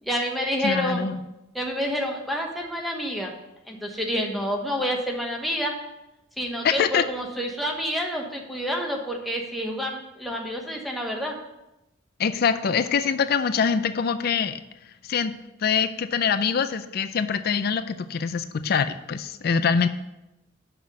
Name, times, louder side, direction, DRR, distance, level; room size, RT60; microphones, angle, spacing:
voice 1, 0.0-1.1 1.5-3.3 3.7-5.7 6.4-11.4, equal, ahead, 0 dB, 1.1 m, -28 dB
voice 2, 0.6-1.2 6.6-7.0 12.2-14.6 15.0-15.3 15.6-19.9, left 6 dB, 55° left, 11 dB, 0.4 m, -24 dB
6.0 x 5.7 x 6.3 m, 0.93 s
head